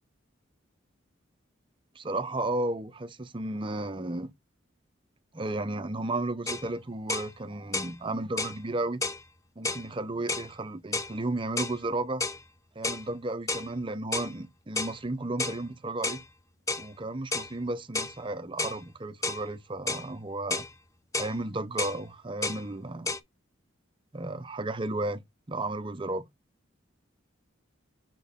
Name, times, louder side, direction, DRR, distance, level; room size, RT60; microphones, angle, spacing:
voice 1, 2.0-4.3 5.3-9.0 9.6-12.2 12.8-16.2 16.8-20.7 21.1-23.1 24.1-25.2 25.5-26.3, right 2 dB, 25° right, 0.6 m, -33 dB
sound 1, 6.5-6.7 7.1-7.3 7.7-7.9 8.4-8.6 9.0-9.2 9.6-9.9 10.3-10.5 10.9-11.1 11.6-11.8 12.2-12.4 12.8-13.0 13.5-13.7 14.1-14.3 14.8-15.0 15.4-15.6 16.0-16.2 16.7-16.9 17.3-17.5 17.9-18.2 18.6-18.8 19.2-19.4 19.9-20.1 20.5-20.7 21.1-21.4 21.8-22.0 22.4-22.6 23.1-23.2, left 3 dB, 15° left, 0.5 m, -31 dB
6.1 x 4.3 x 3.6 m
head